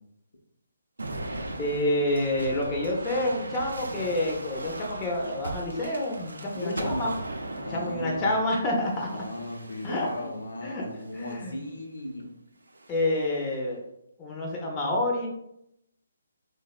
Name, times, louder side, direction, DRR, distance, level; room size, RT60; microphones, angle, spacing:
sound 1, 1.0-10.4 11.0-11.6 12.7-13.4, right 1 dB, 85° right, 0.3 m, -39 dB
voice 1, 1.6-7.1 7.6-9.1 9.8-10.1 10.6-10.9 11.1-11.6 12.9-13.8 14.2-15.3, left 1 dB, 20° left, -2 dB, 0.5 m, -28 dB
voice 2, 6.5-7.2 7.6-8.4 9.0-12.3, left 1 dB, 75° left, 1 dB, 0.5 m, -36 dB
2.6 x 2.0 x 2.3 m, 0.77 s
figure-of-eight pair, 150°, 0 cm